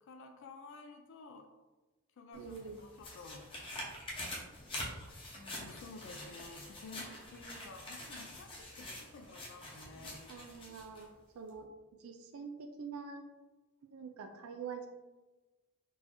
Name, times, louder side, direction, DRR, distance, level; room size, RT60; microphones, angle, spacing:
voice 1, 0.0-1.5 2.2-3.5 5.3-10.2, left 3 dB, 60° left, 5 dB, 0.3 m, -52 dB
sound 1, 2.3-11.1 11.5-11.6, left 1 dB, 25° left, 0.7 m, -46 dB
voice 2, 2.3-2.8 10.3-11.1 11.3-11.7 11.9-13.2 13.8-14.9, right 5 dB, 70° right, 5 dB, 0.3 m, -45 dB
3.8 x 2.6 x 2.9 m, 1.2 s
head